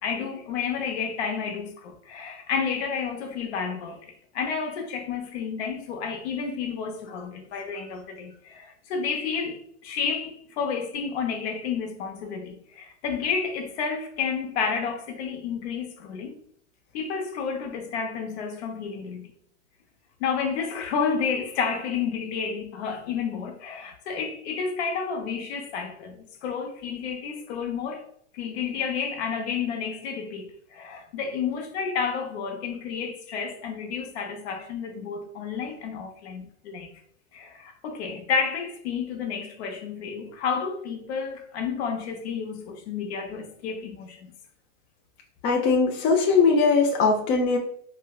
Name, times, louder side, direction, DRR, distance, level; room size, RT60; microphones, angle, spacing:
voice 1, 0.0-4.0 4.3-16.3 16.9-19.3 20.2-28.1 28.3-37.0 37.3-44.3, left 6 dB, 60° left, 0.8 m, -31 dB
voice 2, 45.4-47.6, left 4 dB, 30° left, 0.5 m, -20 dB
4.2 x 2.0 x 2.3 m
hypercardioid pair, 120°, 36 cm